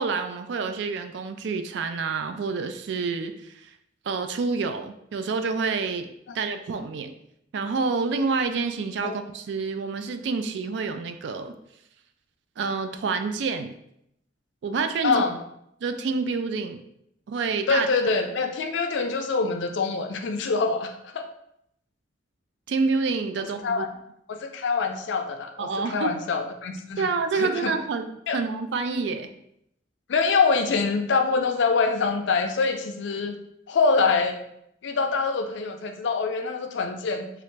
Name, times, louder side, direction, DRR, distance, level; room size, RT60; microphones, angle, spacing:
voice 1, 0.0-3.7 4.1-7.1 7.5-11.5 12.6-13.7 14.6-15.2 15.8-16.8 17.3-17.9 22.7-23.9 25.6-26.1 27.0-29.3, right 4 dB, 65° right, 8 dB, 0.3 m, -28 dB
voice 2, 15.0-15.4 17.7-21.2 23.4-23.9 24.3-27.1 27.3-27.7 28.3-28.4 30.1-33.4 33.7-34.4 34.8-37.3, left 4 dB, 70° left, 6 dB, 0.4 m, -25 dB
3.1 x 2.4 x 3.2 m, 0.76 s
head